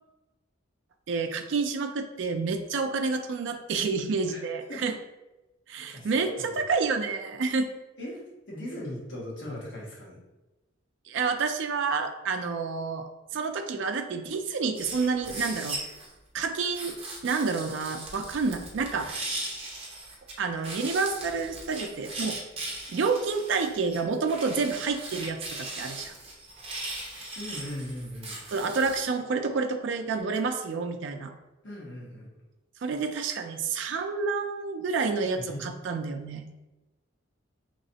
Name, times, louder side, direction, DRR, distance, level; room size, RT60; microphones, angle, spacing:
voice 1, 1.1-5.0 5.7-7.7 11.1-13.1 13.3-15.8 16.3-17.0 17.2-19.3 20.4-22.4 22.9-26.1 28.5-31.3 32.8-36.4, right 4 dB, 65° right, 6 dB, 0.4 m, -29 dB
voice 2, 5.9-6.5 8.0-8.2 8.5-10.2 27.3-28.4 31.6-32.3 35.4-35.6, left 1 dB, 60° left, -5 dB, 1.2 m, -38 dB
sound 1, 14.7-16.1 16.7-20.3 20.6-29.0, right 2 dB, 30° right, 0.7 m, -39 dB
4.0 x 3.0 x 2.8 m, 1.1 s
head